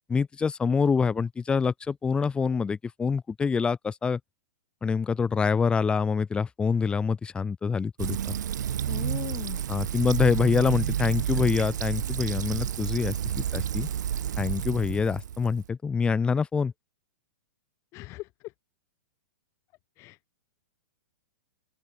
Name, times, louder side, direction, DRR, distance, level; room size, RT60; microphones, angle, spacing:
voice 1, 0.1-4.2 4.8-8.3 9.7-13.9 14.4-16.7, left 5 dB, 10° left, 2.6 m, -26 dB
Fill (with liquid), 8.0-15.7, right 10 dB, 80° right, 6.2 m, -30 dB
voice 2, 8.9-9.6 17.9-18.5 20.0-20.2, left 20 dB, 30° left, 2.3 m, -38 dB
open air
hypercardioid pair, 160°, 10 cm